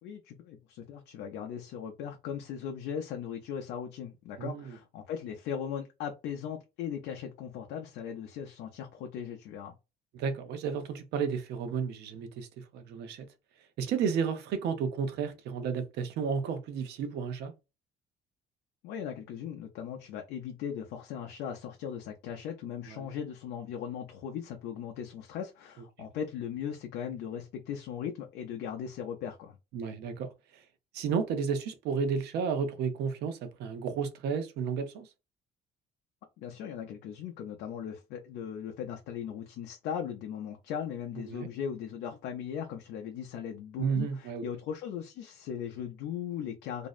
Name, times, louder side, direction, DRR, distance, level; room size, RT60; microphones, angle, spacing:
voice 1, 0.0-9.7 18.8-29.6 36.4-46.9, left 8 dB, 85° left, 0.5 m, -38 dB
voice 2, 4.4-4.8 10.1-13.3 13.8-17.5 22.9-23.1 29.7-30.6 30.9-35.1 41.2-41.5 43.8-44.4, right 6 dB, 75° right, 0.6 m, -32 dB
2.6 x 2.1 x 2.3 m
cardioid pair, 110°, 17 cm